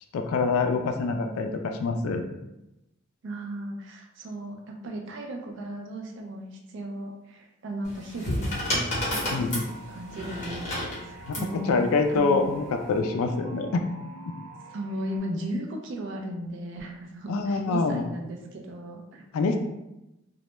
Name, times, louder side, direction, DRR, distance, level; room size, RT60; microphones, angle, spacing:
voice 1, 0.1-2.2 9.3-9.7 11.3-11.4 11.7-13.8 17.3-18.0 19.3-19.6, left 4 dB, 80° left, 5 dB, 0.3 m, -25 dB
voice 2, 3.2-8.6 9.1-11.8 12.1-12.4 14.7-19.3, right 1 dB, 55° right, 1 dB, 0.4 m, -36 dB
sound 1, 7.8-11.5 12.6-13.0, left 1 dB, 30° left, 0.8 m, -31 dB
sound 2, 9.6-15.2, right 3 dB, 15° right, 0.7 m, -46 dB
2.1 x 2.1 x 2.9 m, 0.93 s
head